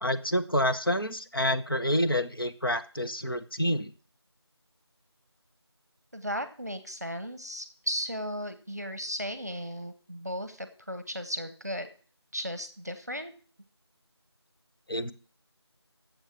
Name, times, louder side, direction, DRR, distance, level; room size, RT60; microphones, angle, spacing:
voice 1, 0.0-3.9 14.9-15.1, equal, 55° left, 8 dB, 1.0 m, -28 dB
voice 2, 6.1-11.9 12.3-13.3, equal, 35° right, 10 dB, 0.9 m, -35 dB
8.9 x 7.3 x 7.0 m, 0.41 s
figure-of-eight pair, 175°, 14 cm